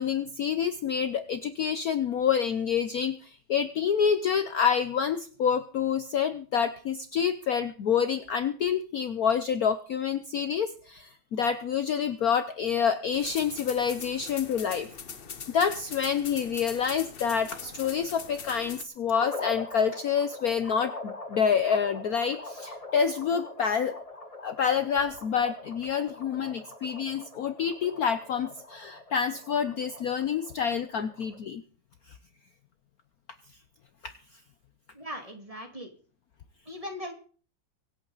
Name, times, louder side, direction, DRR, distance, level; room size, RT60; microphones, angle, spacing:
voice 1, 0.0-14.9 15.5-23.9 24.4-31.6, left 7 dB, 60° left, 10 dB, 1.1 m, -27 dB
sound 1, 13.1-18.8, left 6 dB, 45° left, 0.8 m, -42 dB
sound 2, 19.1-31.4, left 2 dB, 20° left, 1.6 m, -42 dB
voice 2, 34.9-35.9 36.7-37.1, equal, 15° right, 4 dB, 2.3 m, -39 dB
24.5 x 8.7 x 4.0 m, 0.42 s
omnidirectional pair, 2.1 m